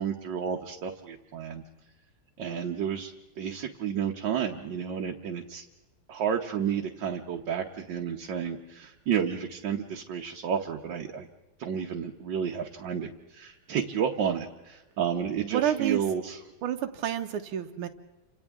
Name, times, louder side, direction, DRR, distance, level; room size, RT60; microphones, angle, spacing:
voice 1, 0.0-1.6 2.4-5.6 6.1-11.3 11.6-16.4, right 8 dB, 65° right, 1 dB, 1.6 m, -31 dB
voice 2, 15.4-16.0 16.6-17.9, right 10 dB, 90° right, 5 dB, 1.8 m, -29 dB
29.5 x 27.0 x 3.6 m, 1.1 s
omnidirectional pair, 2.3 m